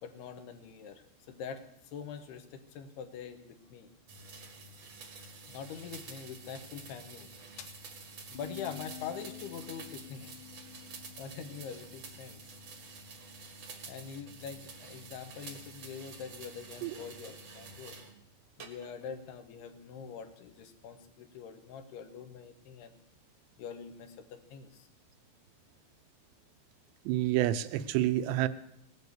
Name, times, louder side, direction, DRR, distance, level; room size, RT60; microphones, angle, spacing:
voice 1, 0.0-3.9 5.2-7.3 7.6-7.8 8.3-10.3 11.2-12.4 13.9-18.0 18.6-23.0 23.6-24.9, left 7 dB, 75° left, 8 dB, 3.1 m, -44 dB
sound 1, 4.1-18.1 18.6-19.1, right 3 dB, 55° right, 1.4 m, -49 dB
sound 2, 8.3-13.5, left 13 dB, 50° left, 3.5 m, -50 dB
voice 2, 27.1-28.5, right 14 dB, 85° right, 12 dB, 2.9 m, -28 dB
18.0 x 9.1 x 8.2 m, 0.81 s
omnidirectional pair, 4.8 m